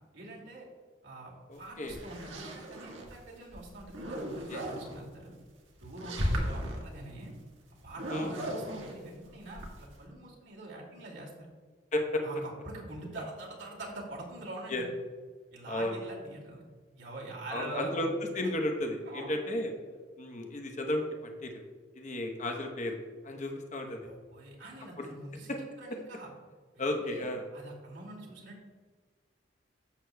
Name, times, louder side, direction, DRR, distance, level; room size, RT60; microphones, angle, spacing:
voice 1, 0.1-0.6 1.0-5.4 5.8-7.3 7.8-11.5 12.2-14.9 15.5-16.6 17.0-18.1 18.4-18.5 19.0-19.3 23.8-26.3 26.7-27.2 27.5-28.6, right 2 dB, 70° right, -2 dB, 2.4 m, -44 dB
voice 2, 1.5-2.0 4.5-4.6 8.1-8.3 11.9-12.2 14.7-14.8 15.7-16.0 17.5-19.7 20.2-21.6 21.9-23.0 23.2-24.1 25.0-25.1 26.8-27.5, left 1 dB, 40° left, 3 dB, 1.0 m, -33 dB
sound 1, 1.6-3.2 3.5-5.0 5.8-6.8 7.9-10.0, equal, 85° right, 1.5 m, -36 dB
11.5 x 8.0 x 2.3 m, 1.5 s
head